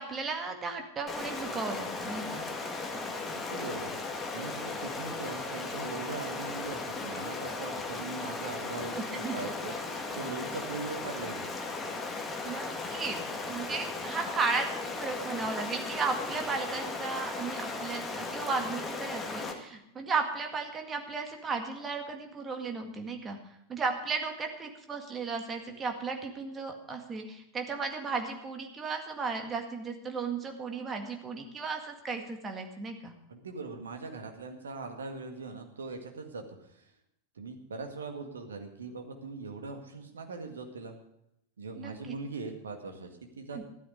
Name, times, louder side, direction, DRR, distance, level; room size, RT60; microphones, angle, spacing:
voice 1, 0.0-2.4 9.0-9.4 12.4-13.2 13.5-23.4 23.7-33.1 41.8-42.1 43.5-43.6, right 4 dB, 20° right, 4 dB, 1.9 m, -35 dB
Stream, 1.1-19.5, left 3 dB, 15° left, 1.9 m, -36 dB
voice 2, 3.3-3.9 4.3-11.5 33.3-36.9 37.4-41.0 41.6-43.6, right 4 dB, 70° right, 5 dB, 1.9 m, -41 dB
14.0 x 12.5 x 5.2 m, 0.80 s
figure-of-eight pair, 90°, 0 cm